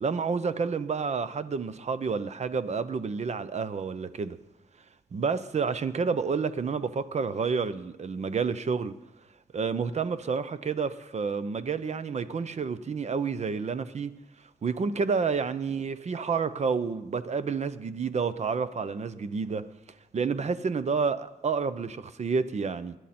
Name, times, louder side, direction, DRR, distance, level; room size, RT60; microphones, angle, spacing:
voice 1, 0.0-4.4 5.1-8.9 9.5-14.1 14.6-19.6 20.1-23.0, right 5 dB, 45° right, 0.8 m, -29 dB
21.5 x 11.0 x 4.4 m
cardioid pair, 100°, 15 cm